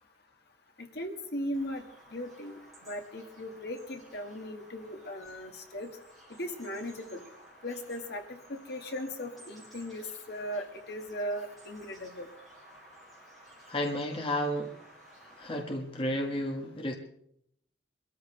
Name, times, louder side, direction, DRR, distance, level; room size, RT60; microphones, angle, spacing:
voice 1, 1.0-1.8 2.1-5.9 6.4-7.2 7.6-8.2 8.5-12.3, equal, 60° left, 4 dB, 1.9 m, -38 dB
Bird vocalization bird call bird song, 1.5-15.6, right 1 dB, ahead, 5.2 m, -55 dB
voice 2, 13.7-14.7 15.4-16.9, equal, 30° left, 2 dB, 1.2 m, -32 dB
24.0 x 13.5 x 3.3 m, 0.70 s
head